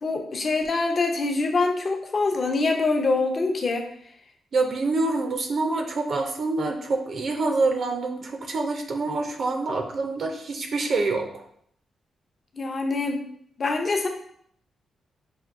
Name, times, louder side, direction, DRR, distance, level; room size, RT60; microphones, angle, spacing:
voice 1, 0.0-3.9 12.5-13.2 13.6-14.1, left 3 dB, 35° left, 3 dB, 0.6 m, -24 dB
voice 2, 4.5-11.3, right 3 dB, 50° right, 3 dB, 0.5 m, -26 dB
5.7 x 2.6 x 2.5 m, 0.66 s
wide cardioid pair, 135°, 0 cm